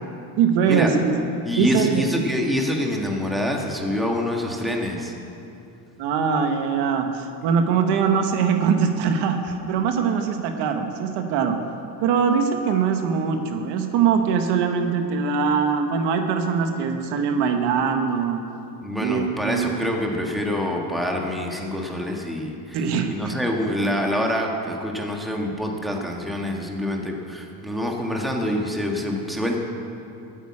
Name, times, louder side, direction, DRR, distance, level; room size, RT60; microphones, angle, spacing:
voice 1, 0.4-1.1 1.5-2.0 6.0-11.6 12.0-18.4 19.0-19.7 22.7-23.1, right 6 dB, 70° right, 5 dB, 1.3 m, -22 dB
voice 2, 1.4-5.1 18.8-29.6, left 1 dB, ahead, 0 dB, 1.4 m, -26 dB
11.5 x 9.1 x 8.6 m, 2.6 s
cardioid pair, 130°, 43 cm